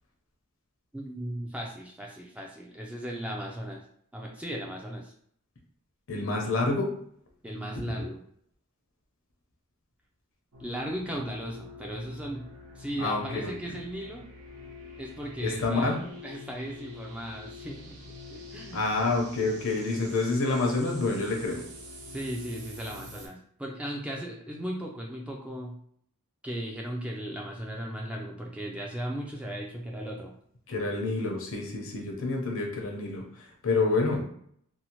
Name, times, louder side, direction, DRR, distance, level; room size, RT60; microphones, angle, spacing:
voice 1, 0.9-3.8 4.1-5.1 7.4-8.2 10.6-12.5 12.8-14.2 15.0-15.9 16.2-19.1 22.1-25.8 26.4-30.3, right 1 dB, 5° right, -1 dB, 0.3 m, -37 dB
voice 2, 6.1-6.9 7.7-8.1 13.0-13.8 15.4-16.0 18.7-21.6 30.7-34.2, left 3 dB, 65° left, 1 dB, 0.7 m, -28 dB
sound 1, 10.5-23.3, left 3 dB, 75° right, 0.6 m, -46 dB
2.7 x 2.0 x 2.9 m, 0.65 s
head